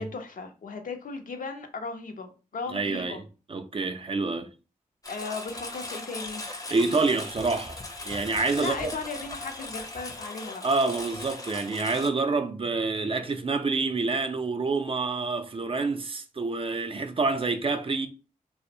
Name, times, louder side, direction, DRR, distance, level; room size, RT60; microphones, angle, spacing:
voice 1, 0.0-3.2 5.1-6.4 8.6-10.6, left 4 dB, 70° left, 0.5 m, -36 dB
voice 2, 2.7-3.2 3.5-4.5 6.7-9.0 10.6-18.1, right 3 dB, 40° right, 0.4 m, -27 dB
Engine, 5.0-12.1, left 2 dB, 25° left, 0.5 m, -39 dB
2.5 x 2.0 x 2.7 m
cardioid pair, 50°, 15 cm